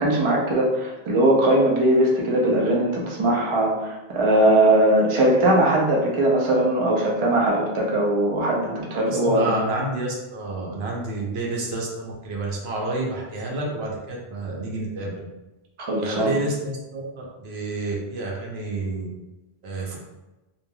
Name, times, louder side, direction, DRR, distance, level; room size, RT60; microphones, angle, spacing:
voice 1, 0.0-9.5 15.8-16.3, right 1 dB, 40° right, -2 dB, 0.5 m, -20 dB
voice 2, 9.1-15.2 16.0-19.1 19.6-20.0, right 2 dB, 80° right, -2 dB, 0.9 m, -29 dB
3.2 x 2.4 x 2.2 m, 1.0 s
omnidirectional pair, 1.1 m